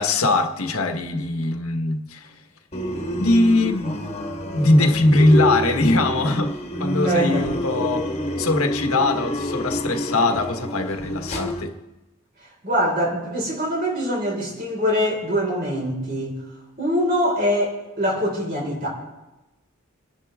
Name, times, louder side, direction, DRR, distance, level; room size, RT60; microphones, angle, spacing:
voice 1, 0.0-2.3 3.2-4.0 4.5-6.5 6.8-8.1 8.4-11.7, left 2 dB, 80° left, 1.5 m, -21 dB
sound 1, 2.7-11.6, equal, 30° left, 1.7 m, -27 dB
voice 2, 7.0-7.5 12.6-16.4 16.8-18.9, equal, 40° right, 5.1 m, -23 dB
27.0 x 10.5 x 3.6 m
head